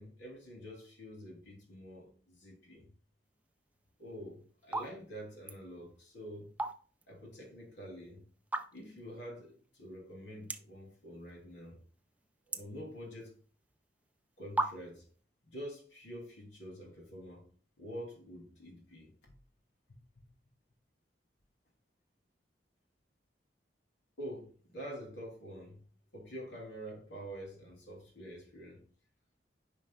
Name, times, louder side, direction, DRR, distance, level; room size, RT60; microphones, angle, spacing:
voice 1, 0.0-2.8 4.0-6.5 7.1-8.2 8.7-11.8 12.5-13.3 14.4-15.0 15.4-17.4 17.8-19.3 24.2-25.8 26.1-28.8, equal, 85° left, 2.9 m, -47 dB
sound 1, 3.9-4.2 4.6-4.9 5.2-5.6 6.4-7.1 7.4-7.5 8.4-9.0 9.5-9.6 9.8-9.9 10.4-10.8 11.2-11.7 12.0-13.4 14.1-14.2 14.6-15.1, right 2 dB, 10° right, 0.3 m, -36 dB
9.5 x 5.2 x 2.3 m
head